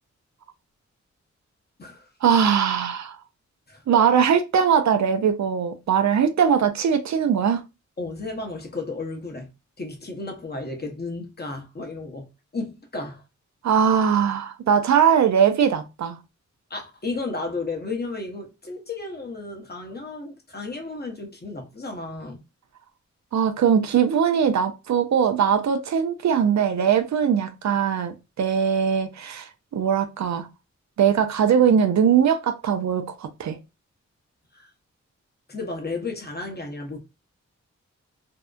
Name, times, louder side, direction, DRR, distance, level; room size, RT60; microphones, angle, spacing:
voice 1, 2.2-3.2 3.9-7.6 13.6-16.2 23.3-30.5 31.0-33.6, right 7 dB, 70° right, 0.5 m, -21 dB
voice 2, 8.0-9.5 9.8-13.2 16.7-22.4 34.5-34.7 35.5-37.0, left 3 dB, 35° left, 0.9 m, -33 dB
2.7 x 2.1 x 2.2 m
cardioid pair, 50°, 30 cm